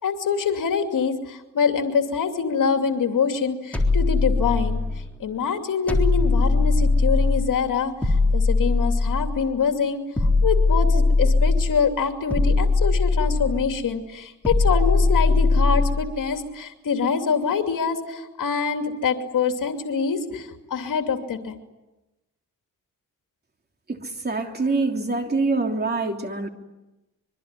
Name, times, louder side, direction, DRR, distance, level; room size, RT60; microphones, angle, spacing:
voice 1, 0.0-4.8 5.2-21.6, left 6 dB, 75° left, 5 dB, 2.8 m, -25 dB
sound 1, 3.7-5.1 5.9-7.5 8.0-9.4 10.2-11.8 12.3-13.7 14.4-16.1, left 3 dB, 5° left, 3.7 m, -20 dB
voice 2, 23.9-26.5, right 3 dB, 30° right, 4 dB, 3.2 m, -25 dB
25.5 x 23.5 x 9.8 m, 1.0 s
wide cardioid pair, 135°, 33 cm